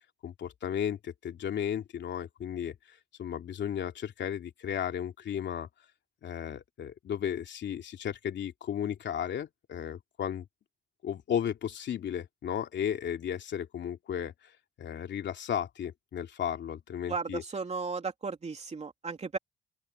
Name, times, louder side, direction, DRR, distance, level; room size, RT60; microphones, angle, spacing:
voice 1, 0.2-2.7 3.2-5.7 6.2-10.4 11.0-14.5 14.8-17.4, left 9 dB, 65° left, 2.8 m, -34 dB
voice 2, 17.1-19.4, right 4 dB, 35° right, 3.2 m, -35 dB
open air
cardioid pair, 90°, 20 cm